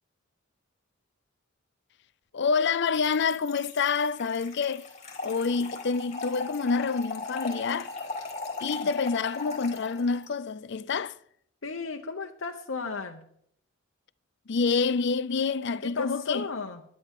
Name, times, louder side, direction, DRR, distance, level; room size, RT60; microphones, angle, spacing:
voice 1, 2.3-4.9 5.2-7.9 8.6-11.2 14.5-16.4, left 5 dB, 60° left, 0.5 m, -27 dB
Trickle dribble / Fill (with liquid), 2.9-10.3, left 3 dB, 35° left, 4.1 m, -38 dB
voice 2, 11.6-13.3 15.8-16.8, left 4 dB, 80° left, 1.0 m, -35 dB
20.5 x 11.5 x 3.8 m
head